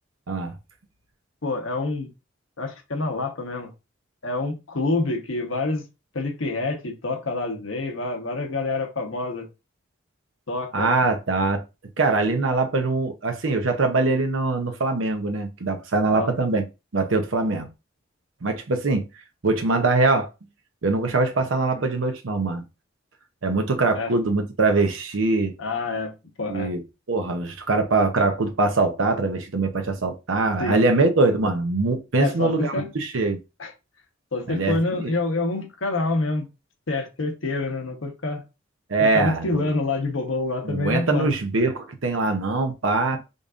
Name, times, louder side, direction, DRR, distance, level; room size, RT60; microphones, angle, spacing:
voice 1, 1.4-2.1 2.6-3.7 4.2-5.8 6.1-9.5 10.5-10.9 16.1-16.3 21.8-21.9 23.9-24.1 25.6-26.1 26.4-26.7 30.6-30.8 32.2-32.9 33.6-33.7 34.3-36.5 36.9-38.4 39.0-41.3 43.1-43.2, left 2 dB, 90° left, 1.0 m, -27 dB
voice 2, 10.7-11.6 12.0-16.6 16.9-17.7 18.4-19.0 19.4-20.3 20.8-22.6 23.4-25.5 26.5-26.8 27.1-33.4 34.5-35.1 38.9-39.7 40.6-43.2, right 3 dB, 80° right, 0.7 m, -23 dB
5.2 x 2.6 x 2.5 m
head